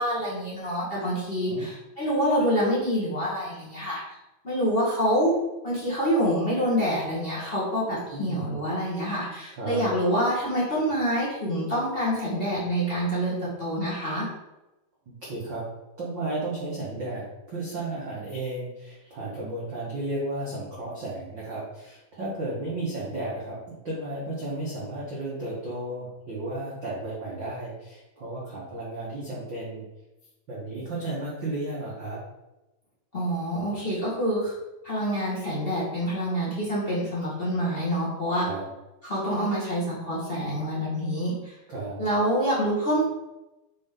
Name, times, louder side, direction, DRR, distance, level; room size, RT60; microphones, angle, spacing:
voice 1, 0.0-4.0 4.4-5.3 5.6-14.3 33.1-34.5 34.8-38.5 39.0-41.5 42.0-43.0, equal, 35° left, -8 dB, 0.9 m, -26 dB
voice 2, 8.1-8.4 9.6-9.9 15.2-15.6 16.0-29.8 30.5-32.2 38.4-38.7 41.7-42.0, right 2 dB, 65° right, -7 dB, 1.1 m, -33 dB
6.2 x 4.5 x 3.8 m, 0.98 s
omnidirectional pair, 4.2 m